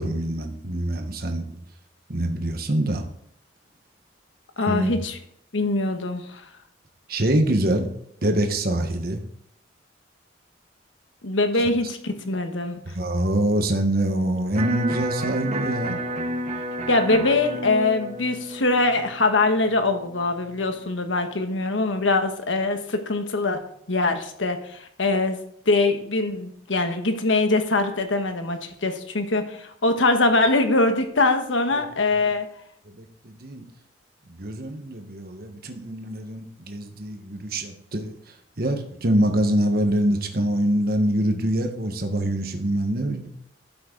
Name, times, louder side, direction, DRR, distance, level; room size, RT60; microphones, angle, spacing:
voice 1, 0.0-1.6 2.1-3.0 4.6-4.9 7.1-7.9 8.2-9.2 12.9-16.0 31.7-31.8 32.1-32.3 32.8-33.6 34.3-38.2 38.6-43.3, right 1 dB, 50° right, 4 dB, 1.3 m, -25 dB
voice 2, 4.6-5.2 5.5-6.4 11.2-12.8 16.9-23.6 23.9-25.4 25.7-32.5, left 2 dB, 85° left, 7 dB, 1.3 m, -23 dB
Electric guitar, 14.5-20.6, right 1 dB, 35° right, 1.3 m, -31 dB
12.0 x 7.7 x 3.9 m, 0.69 s
head